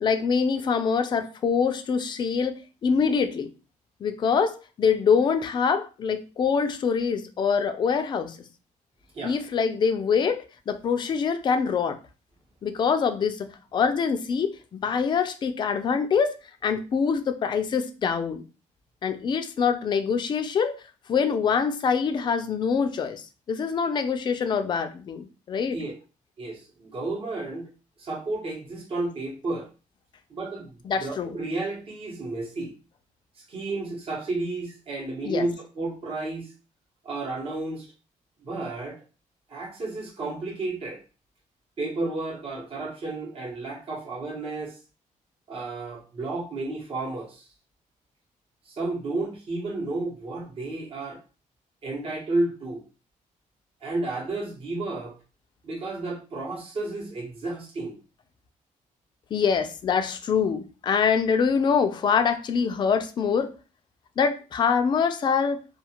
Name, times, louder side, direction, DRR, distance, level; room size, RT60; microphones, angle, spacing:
voice 1, 0.0-3.5 4.0-8.4 9.2-12.0 12.6-16.3 16.6-18.4 19.0-20.7 21.1-25.8 30.8-31.4 35.2-35.4 59.3-63.5 64.2-65.6, left 6 dB, 35° left, 7 dB, 0.3 m, -24 dB
voice 2, 26.4-27.7 28.0-29.7 30.3-30.7 31.0-32.7 33.5-36.5 37.0-37.9 38.4-39.0 39.5-41.0 41.8-44.8 45.5-47.4 48.7-51.2 51.8-52.8 53.8-55.2 55.6-58.0, right 2 dB, 40° right, -1 dB, 0.9 m, -32 dB
2.4 x 2.3 x 2.9 m, 0.33 s
cardioid pair, 135°, 14 cm